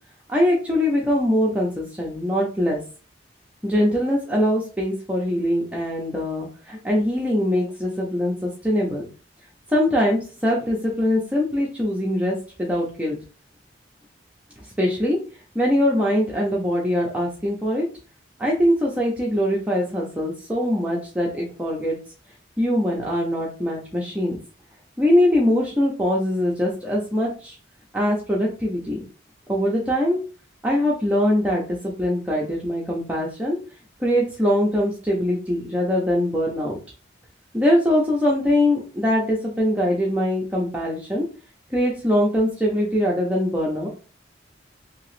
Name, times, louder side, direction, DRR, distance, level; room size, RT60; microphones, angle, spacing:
voice 1, 0.3-2.8 3.6-9.1 9.7-13.2 14.8-15.2 15.5-17.9 18.4-22.0 22.6-24.4 25.0-27.6 27.9-29.0 29.5-30.2 30.6-33.6 34.0-36.8 37.5-41.3 41.7-43.9, left 1 dB, 5° right, -3 dB, 0.5 m, -22 dB
2.9 x 2.8 x 3.1 m, 0.36 s
head